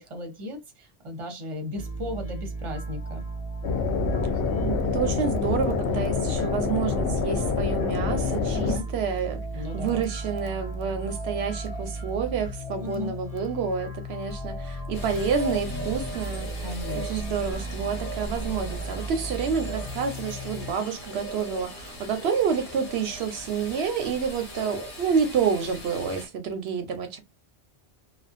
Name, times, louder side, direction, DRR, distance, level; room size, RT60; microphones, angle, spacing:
voice 1, 0.0-3.2 8.5-8.9 9.5-10.0 12.8-13.1 16.6-17.4, left 2 dB, 30° right, 0.8 m, -36 dB
sound 1, 1.7-20.7, right 1 dB, 40° left, 0.6 m, -35 dB
sound 2, 3.6-8.8, left 4 dB, 85° left, 0.9 m, -26 dB
voice 2, 4.6-16.5 17.0-27.2, right 6 dB, 80° right, 0.8 m, -29 dB
sound 3, 14.9-26.3, equal, 65° left, 1.2 m, -38 dB
2.4 x 2.2 x 2.4 m
omnidirectional pair, 1.1 m